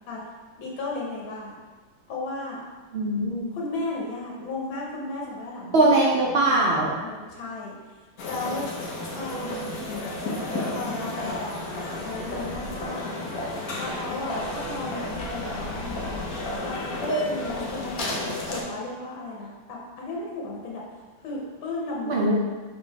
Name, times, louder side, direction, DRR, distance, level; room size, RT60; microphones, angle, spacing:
voice 1, 0.6-1.5 2.1-2.6 3.5-5.8 6.2-8.0 8.2-8.7 9.1-9.7 10.7-13.2 13.8-16.2 16.6-20.8 21.2-22.3, left 2 dB, 85° left, -3 dB, 1.8 m, -35 dB
voice 2, 2.9-3.5 5.7-6.9 22.1-22.3, right 2 dB, 75° right, -3 dB, 0.5 m, -21 dB
sound 1, 8.2-18.6, left 1 dB, 55° left, 1.2 m, -32 dB
6.1 x 4.6 x 3.4 m, 1.3 s
omnidirectional pair, 2.1 m